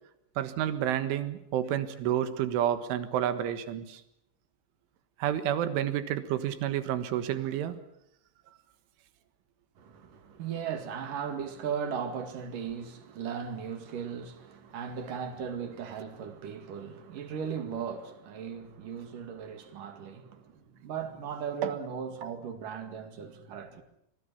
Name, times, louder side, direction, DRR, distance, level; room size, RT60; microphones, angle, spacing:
voice 1, 0.4-4.0 5.2-7.8 21.6-21.7, right 11 dB, 85° right, 4.0 m, -30 dB
voice 2, 9.8-23.8, right 7 dB, 55° right, 3.2 m, -37 dB
25.5 x 24.0 x 7.0 m
omnidirectional pair, 5.4 m